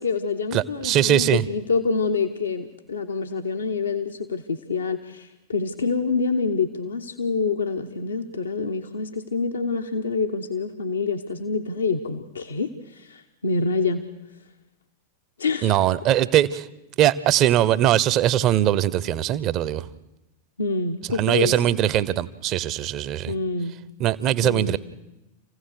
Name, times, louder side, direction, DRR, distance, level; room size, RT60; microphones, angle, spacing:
voice 1, 0.0-14.0 15.4-15.8 20.6-21.7 23.3-23.7 24.4-24.8, left 4 dB, 70° left, 5 dB, 1.0 m, -26 dB
voice 2, 0.5-1.4 15.6-16.7 17.0-19.9 21.2-23.3 24.0-24.8, right 12 dB, 35° right, 17 dB, 0.8 m, -21 dB
28.0 x 16.0 x 6.7 m, 0.99 s
figure-of-eight pair, 90°, 0 cm